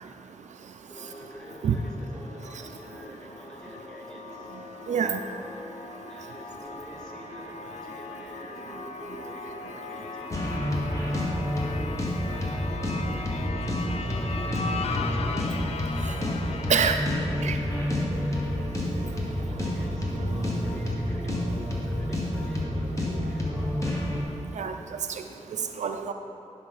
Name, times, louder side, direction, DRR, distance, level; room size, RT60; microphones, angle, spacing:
voice 1, 0.9-4.5 6.1-11.3 12.3-15.4 16.0-18.4 19.3-24.0, equal, 5° left, -4 dB, 1.7 m, -47 dB
sound 1, 1.0-17.0, left 4 dB, 60° left, 0.5 m, -39 dB
voice 2, 4.9-5.2 16.7-17.0 17.4-17.6 20.2-20.4 24.6-24.8 25.1-25.2 25.8-26.1, right 7 dB, 80° right, 6 dB, 0.4 m, -26 dB
sound 2, 10.3-24.2, left 1 dB, 25° left, 1.4 m, -29 dB
11.0 x 5.6 x 4.1 m, 2.7 s
wide cardioid pair, 100°, 12 cm